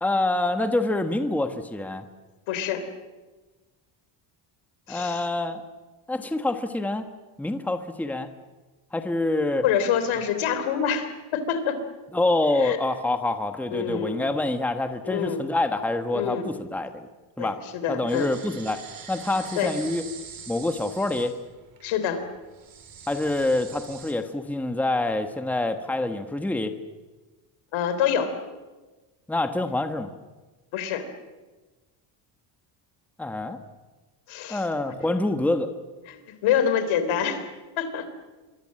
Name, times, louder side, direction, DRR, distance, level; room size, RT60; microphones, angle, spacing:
voice 1, 0.0-2.1 4.9-5.6 6.1-7.0 7.4-8.3 8.9-9.6 12.1-17.1 17.4-17.6 17.9-18.8 19.1-20.0 20.5-21.4 23.1-26.7 29.3-30.1 33.2-33.6 34.5-35.7, left 2 dB, 5° left, 8 dB, 1.3 m, -26 dB
voice 2, 2.5-2.9 4.9-5.3 9.6-11.8 12.6-12.8 13.7-14.3 15.0-15.5 16.1-16.5 17.4-18.3 19.6-19.7 21.8-22.2 27.7-28.3 30.7-31.1 34.3-34.7 36.1-37.5 37.8-38.1, left 8 dB, 75° left, 10 dB, 3.7 m, -26 dB
sound 1, 18.1-24.1, right 7 dB, 45° right, 4.3 m, -44 dB
27.0 x 23.5 x 7.7 m, 1.2 s
cardioid pair, 130°, 48 cm